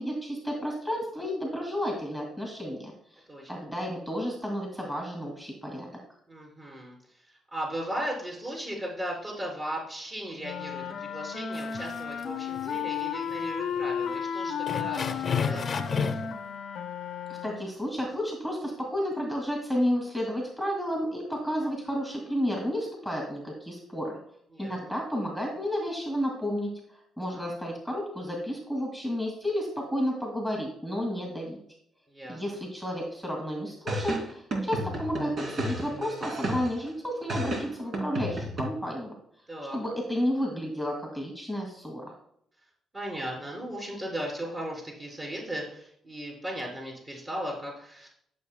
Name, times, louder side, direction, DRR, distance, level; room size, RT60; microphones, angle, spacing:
voice 1, 0.0-3.2 3.5-6.0 17.3-24.2 24.6-26.7 27.2-31.6 32.3-39.1 39.7-42.1, equal, 5° right, 0 dB, 2.2 m, -31 dB
voice 2, 3.3-3.6 6.3-16.3 21.6-21.7 24.5-24.8 27.3-27.5 32.1-32.6 37.6-38.0 39.5-39.8 42.9-48.1, equal, 30° right, -3 dB, 3.6 m, -37 dB
sound 1, 10.4-17.8, left 7 dB, 80° left, 0.8 m, -34 dB
sound 2, 11.5-12.2 12.5-12.7 13.3-13.4 13.8-13.9 14.7-16.3, left 6 dB, 45° left, 0.8 m, -30 dB
sound 3, 33.9-36.9 37.3-38.6, right 1 dB, 55° right, 3.1 m, -32 dB
12.0 x 6.8 x 2.2 m, 0.69 s
cardioid pair, 90°, 0 cm